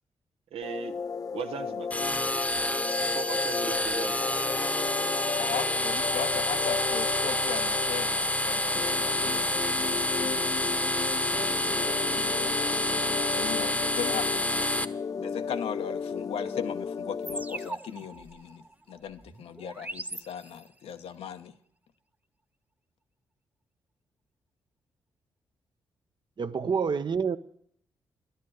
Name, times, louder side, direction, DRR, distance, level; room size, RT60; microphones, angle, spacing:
voice 1, 0.5-0.9 1.3-1.9 3.1-4.3, right 7 dB, 75° right, 1.0 m, -37 dB
sound 1, 0.6-17.7, left 5 dB, 35° left, 0.4 m, -34 dB
sound 2, 1.9-14.8, left 1 dB, 15° left, 0.9 m, -28 dB
voice 2, 5.4-10.5 10.9-12.6 13.3-14.4 15.2-21.5, left 8 dB, 75° left, 0.9 m, -39 dB
sound 3, 17.2-20.9, right 2 dB, 15° right, 0.5 m, -41 dB
voice 3, 26.4-27.4, right 6 dB, 50° right, 0.8 m, -27 dB
11.5 x 8.3 x 9.3 m
supercardioid pair, 45°, 10 cm